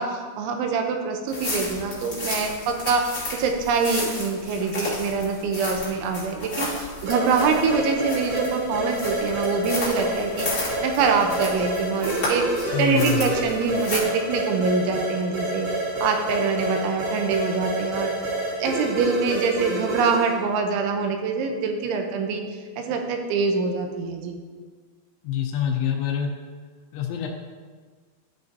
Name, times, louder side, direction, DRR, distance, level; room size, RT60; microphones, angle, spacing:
voice 1, 0.0-3.0 3.4-12.4 12.8-15.7 16.0-18.1 18.6-24.4, right 5 dB, 85° right, 4 dB, 3.1 m, -24 dB
sound 1, 1.3-14.0, left 2 dB, 25° left, 1.9 m, -33 dB
sound 2, 7.1-20.4, right 1 dB, 55° right, 3.6 m, -29 dB
voice 2, 12.6-13.4 25.2-26.3 26.9-27.3, left 9 dB, 80° left, 3 dB, 2.8 m, -26 dB
13.0 x 6.1 x 2.7 m, 1.5 s
omnidirectional pair, 5.5 m